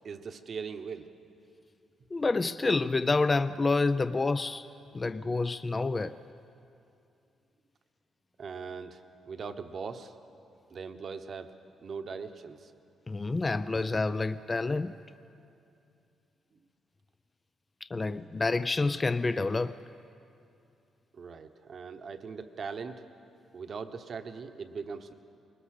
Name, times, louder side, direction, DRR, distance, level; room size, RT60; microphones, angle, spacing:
voice 1, 0.0-1.1 8.4-10.1 10.7-11.5 11.8-12.7 21.1-23.0 23.5-25.1, right 5 dB, 50° right, 8 dB, 1.1 m, -40 dB
voice 2, 2.1-4.7 4.9-6.1 13.1-14.9 17.9-19.7, left 3 dB, 25° left, 12 dB, 0.4 m, -28 dB
20.5 x 20.0 x 6.6 m, 2.6 s
cardioid pair, 110°, 0 cm